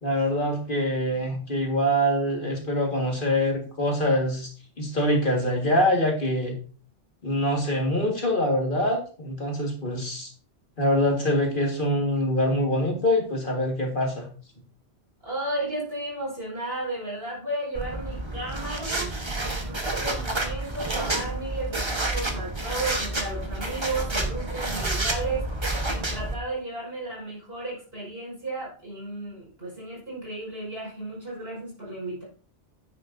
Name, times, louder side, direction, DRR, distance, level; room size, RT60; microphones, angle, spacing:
voice 1, 0.0-4.5 4.8-6.6 7.2-10.3 10.8-14.3, equal, 50° left, 1 dB, 2.1 m, -24 dB
voice 2, 15.2-19.1 19.4-32.2, right 2 dB, 65° right, -4 dB, 5.7 m, -34 dB
sound 1, 17.8-26.4, right 2 dB, 25° right, 1.4 m, -29 dB
9.7 x 9.4 x 2.7 m, 0.39 s
omnidirectional pair, 1.1 m